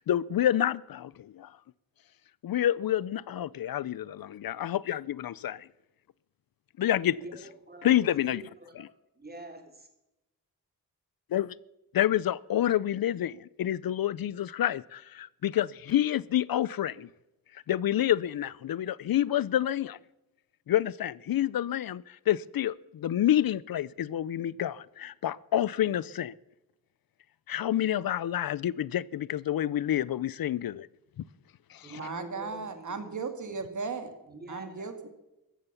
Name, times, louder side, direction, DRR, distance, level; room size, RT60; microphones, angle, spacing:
voice 1, 0.1-1.5 2.4-5.7 6.8-7.2 7.8-8.4 11.3-11.5 11.9-17.1 17.7-20.0 20.7-26.3 27.5-30.9 31.7-32.0, left 11 dB, 70° left, 21 dB, 0.5 m, -28 dB
voice 2, 7.2-8.9 9.2-9.9 31.7-33.1 34.2-34.9, right 2 dB, 25° right, 4 dB, 3.4 m, -46 dB
voice 3, 31.9-34.1 34.5-35.1, right 4 dB, 55° right, 8 dB, 2.1 m, -36 dB
15.0 x 12.5 x 7.2 m, 0.94 s
wide cardioid pair, 120°, 36 cm